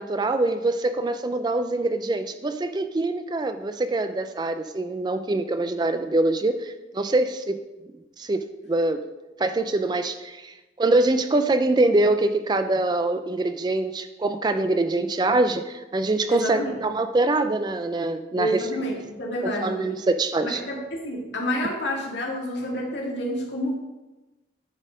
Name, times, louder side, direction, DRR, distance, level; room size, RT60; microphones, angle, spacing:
voice 1, 0.0-7.6 8.2-9.0 9.4-18.7 19.4-20.6, right 2 dB, 20° right, 9 dB, 0.3 m, -24 dB
voice 2, 16.3-16.8 18.4-19.8 20.4-23.8, equal, 70° left, -1 dB, 1.8 m, -29 dB
9.8 x 4.3 x 5.0 m, 1.1 s
head